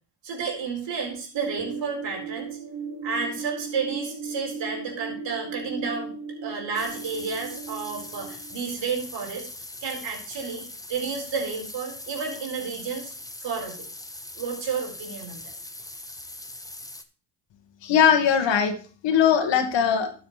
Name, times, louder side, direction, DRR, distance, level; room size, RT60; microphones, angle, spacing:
voice 1, 0.2-2.5 3.0-6.1 6.4-9.5 9.8-13.1 13.4-13.8 14.3-15.4, right 5 dB, 70° right, 0 dB, 4.4 m, -31 dB
sound 1, 1.3-8.6, right 5 dB, 50° right, 1.7 m, -37 dB
sound 2, 6.7-17.0, left 2 dB, 10° left, 1.2 m, -41 dB
voice 2, 17.8-18.8 19.0-20.1, left 8 dB, 70° left, 6 dB, 1.8 m, -20 dB
13.0 x 7.1 x 3.2 m, 0.41 s
supercardioid pair, 55°, 45 cm